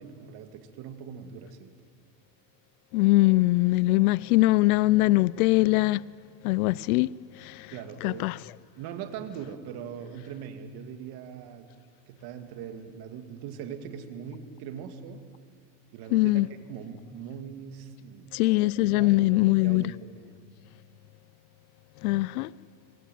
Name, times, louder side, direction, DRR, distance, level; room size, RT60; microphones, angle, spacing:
voice 1, 0.0-1.7 7.7-8.3 8.8-11.7 12.1-15.2 15.9-18.3 18.8-20.4, right 7 dB, 50° right, 2.7 m, -41 dB
voice 2, 2.9-6.0 6.4-7.7 8.0-8.4 16.1-16.5 18.3-19.9 22.0-22.5, left 19 dB, 60° left, 0.6 m, -22 dB
26.5 x 22.0 x 9.4 m
supercardioid pair, 115°, 49 cm